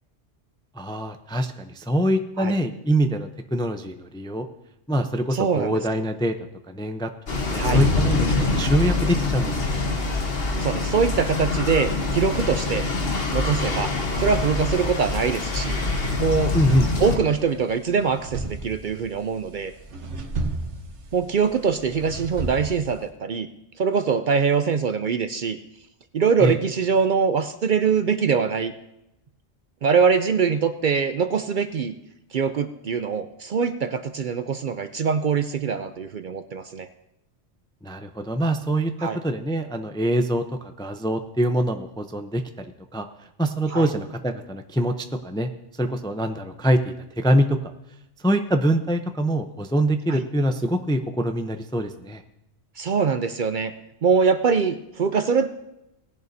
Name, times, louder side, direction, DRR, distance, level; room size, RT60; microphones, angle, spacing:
voice 1, 0.8-4.5 4.9-6.3 6.7-7.1 7.5-9.6 9.8-10.0 16.5-16.9 26.4-26.6 37.8-40.4 40.8-42.7 42.9-43.1 43.4-44.9 45.2-45.5 45.8-47.6 48.2-52.2, right 1 dB, 5° left, 7 dB, 0.4 m, -24 dB
voice 2, 5.3-5.8 7.5-7.8 10.6-12.9 13.1-15.8 16.2-16.5 17.0-19.7 21.1-23.5 23.8-25.6 26.1-28.7 29.8-31.9 32.3-36.9 39.0-39.2 43.7-43.9 50.1-50.2 52.8-53.7 54.0-55.5, right 6 dB, 55° right, 10 dB, 0.6 m, -23 dB
sound 1, 7.3-17.2, left 3 dB, 60° left, 1.4 m, -25 dB
sound 2, 16.0-23.1, right 2 dB, 90° right, 1.4 m, -34 dB
19.0 x 10.5 x 2.7 m, 0.87 s
omnidirectional pair, 1.1 m